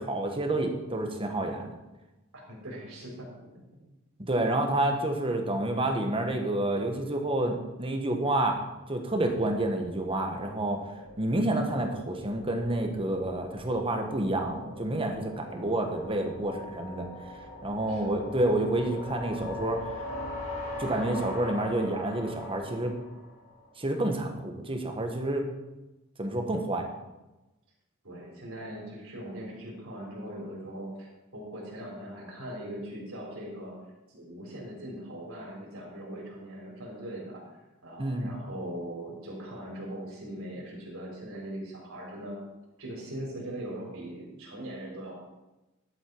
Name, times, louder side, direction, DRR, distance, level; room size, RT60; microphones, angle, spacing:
voice 1, 0.0-1.7 4.2-8.6 8.9-10.8 11.2-17.1 17.6-19.9 20.8-22.9 23.8-25.5 26.2-26.8 38.0-38.3, right 1 dB, 25° right, 3 dB, 1.4 m, -29 dB
voice 2, 2.5-4.0 15.5-15.7 17.9-18.4 28.0-33.7 34.1-37.4 37.8-42.4 42.8-45.1, right 1 dB, 80° right, -3 dB, 4.1 m, -40 dB
sound 1, 8.6-23.7, left 1 dB, 60° left, 4.3 m, -42 dB
11.5 x 8.1 x 4.6 m, 1.0 s
head